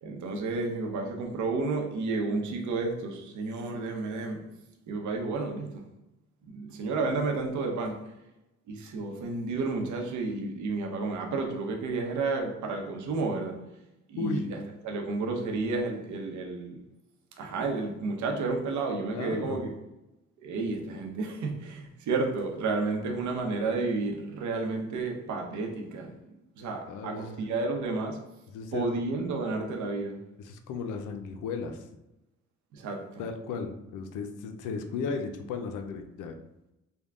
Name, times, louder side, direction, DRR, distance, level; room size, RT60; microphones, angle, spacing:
voice 1, 0.0-4.4 4.9-5.8 6.5-8.0 8.7-13.6 14.1-16.8 17.4-19.7 20.4-26.1 26.6-28.2 28.7-30.2 32.7-33.2, right 3 dB, 70° right, 2 dB, 0.8 m, -31 dB
voice 2, 14.2-14.5 19.0-19.6 26.9-27.5 28.5-29.0 30.4-31.8 33.2-36.4, left 4 dB, 85° left, 7 dB, 0.5 m, -35 dB
3.5 x 2.2 x 3.6 m, 0.93 s
cardioid pair, 90°, 30 cm